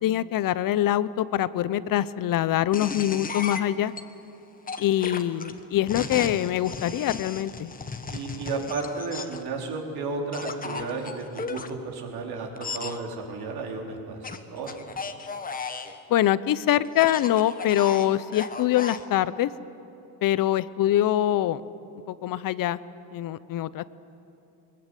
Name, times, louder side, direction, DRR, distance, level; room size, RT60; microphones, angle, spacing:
voice 1, 0.0-3.9 4.8-7.7 16.1-19.5 20.2-21.6 22.1-22.8 23.1-23.8, left 12 dB, 50° left, 17 dB, 0.8 m, -24 dB
sound 1, 2.7-4.0 4.7-9.5 10.3-11.7 12.6-13.0 14.2-16.0 16.9-19.0, left 4 dB, 20° left, 1.3 m, -35 dB
voice 2, 8.1-14.2 14.5-14.8, right 4 dB, 60° right, 1 dB, 4.3 m, -33 dB
22.0 x 21.0 x 9.2 m, 2.9 s
cardioid pair, 115°, 42 cm